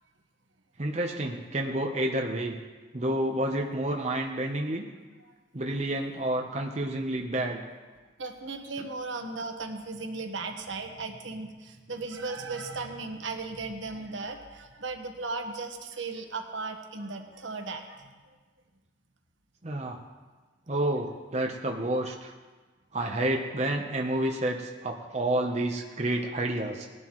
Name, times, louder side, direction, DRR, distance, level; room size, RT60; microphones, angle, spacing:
voice 1, 0.8-2.6 2.9-4.9 5.5-7.6 8.8-8.9 19.6-20.0 20.7-22.3 22.9-26.9, right 1 dB, 35° right, 1 dB, 0.8 m, -29 dB
voice 2, 8.2-18.1, right 3 dB, 75° right, 4 dB, 1.3 m, -36 dB
19.0 x 11.0 x 3.1 m, 1.4 s
head